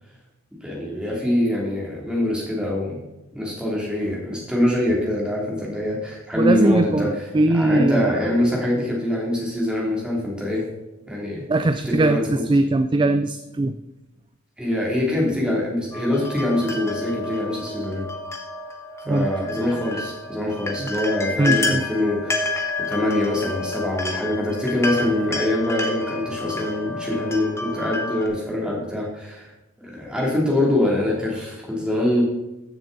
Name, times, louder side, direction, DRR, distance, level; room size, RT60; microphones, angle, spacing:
voice 1, 0.6-3.0 3.3-7.3 7.5-10.7 11.1-11.4 11.8-12.2 14.6-18.0 19.1-22.5 22.9-29.5 29.8-32.2, left 1 dB, 5° right, -3 dB, 2.8 m, -24 dB
voice 2, 6.3-8.2 11.5-13.8 19.1-19.3 20.8-20.9 21.4-21.8, right 2 dB, 20° right, 9 dB, 0.3 m, -20 dB
sound 1, 15.9-28.3, left 2 dB, 15° left, 1.1 m, -29 dB
13.5 x 7.0 x 4.0 m, 0.97 s
head